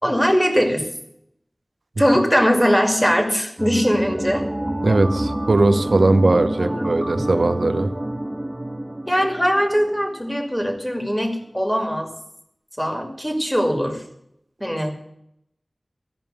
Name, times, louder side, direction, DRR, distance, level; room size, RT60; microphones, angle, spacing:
voice 1, 0.0-0.9 2.0-4.5 4.9-5.0 6.3-7.0 9.1-12.1 12.8-14.0 14.6-14.9, equal, 5° left, 4 dB, 2.4 m, -21 dB
sound 1, 3.6-10.6 10.9-11.0, right 1 dB, 20° right, 0.7 m, -28 dB
voice 2, 4.8-7.9, right 2 dB, 85° right, 11 dB, 0.8 m, -19 dB
14.0 x 5.5 x 9.1 m, 0.75 s
wide cardioid pair, 55°, 0 cm